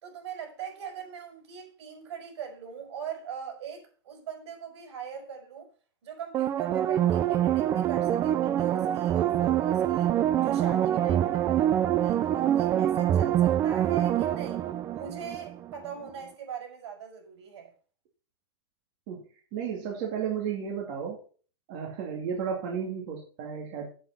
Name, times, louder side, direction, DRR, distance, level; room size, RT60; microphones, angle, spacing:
voice 1, 0.0-5.7 6.0-10.1 10.4-14.6 14.9-17.7, right 8 dB, 70° right, 5.0 m, -40 dB
sound 1, 6.3-15.7 16.1-16.2, right 11 dB, 20° right, 0.4 m, -25 dB
voice 2, 19.5-21.2 21.7-23.9, right 7 dB, 40° right, 2.4 m, -33 dB
8.2 x 7.7 x 5.7 m
supercardioid pair, 170°, 15 cm